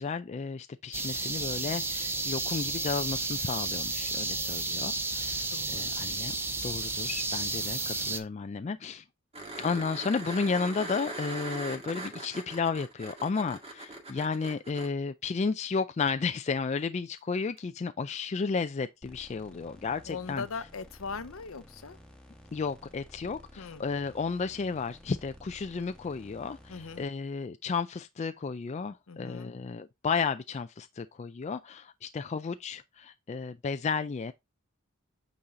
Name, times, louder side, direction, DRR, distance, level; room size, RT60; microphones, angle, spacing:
voice 1, 0.0-6.4 6.6-9.0 9.6-20.5 22.5-34.3, left 5 dB, 30° left, 0.3 m, -33 dB
sound 1, 0.9-8.2, right 3 dB, 10° right, 0.7 m, -32 dB
voice 2, 5.5-6.2 20.1-22.0 23.6-23.8 26.7-27.1 29.1-29.5, left 5 dB, 70° left, 0.7 m, -40 dB
sound 2, 9.3-14.9 17.6-17.7, right 2 dB, 30° right, 1.9 m, -40 dB
sound 3, 19.0-27.0, left 1 dB, 5° left, 1.3 m, -53 dB
8.7 x 4.1 x 3.6 m
head